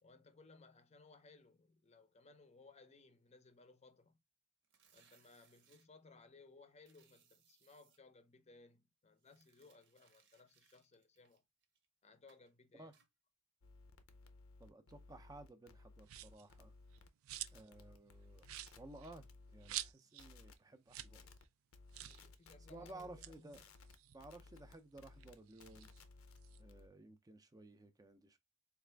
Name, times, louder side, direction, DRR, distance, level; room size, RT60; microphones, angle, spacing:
voice 1, 0.0-4.2 4.9-11.4 12.0-13.0 22.0-23.7, left 3 dB, 30° left, 0.6 m, -63 dB
sound 1, 4.6-5.9 6.8-8.0 9.2-11.8 12.3-12.5 12.9-13.1, right 7 dB, 60° right, 0.8 m, -72 dB
sound 2, 13.6-19.9 20.2-20.5 21.0-21.4 21.7-26.9, left 3 dB, 85° left, 0.6 m, -60 dB
voice 2, 14.6-16.7 17.5-18.5 18.8-21.3 22.7-23.6 24.1-25.9 26.6-28.4, right 2 dB, 20° right, 0.5 m, -56 dB
sound 3, 16.0-16.5 16.9-17.7 18.0-18.1 18.4-20.3 20.6-20.7 20.9-21.2 21.4-21.5 21.9-22.2 23.0-24.7 25.1-26.6, right 14 dB, 75° right, 0.3 m, -48 dB
4.1 x 2.4 x 3.3 m
head